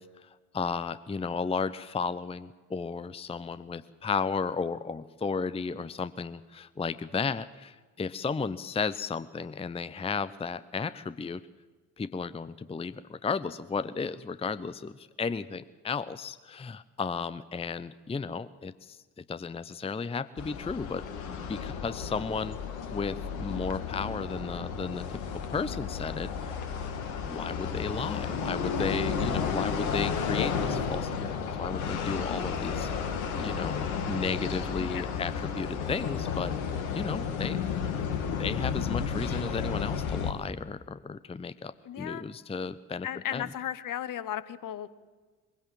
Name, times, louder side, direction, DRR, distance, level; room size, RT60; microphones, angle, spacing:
voice 1, 0.0-11.4 12.0-22.6 22.9-26.5 27.3-32.9 33.2-37.6 38.4-43.5, left 5 dB, 15° left, 15 dB, 0.7 m, -34 dB
sound 1, 20.4-40.3, left 6 dB, 75° left, 1.7 m, -32 dB
voice 2, 34.8-35.3 41.8-42.2 43.0-44.9, left 10 dB, 50° left, 15 dB, 1.2 m, -35 dB
22.5 x 16.5 x 7.6 m, 1.3 s
figure-of-eight pair, 45°, 42 cm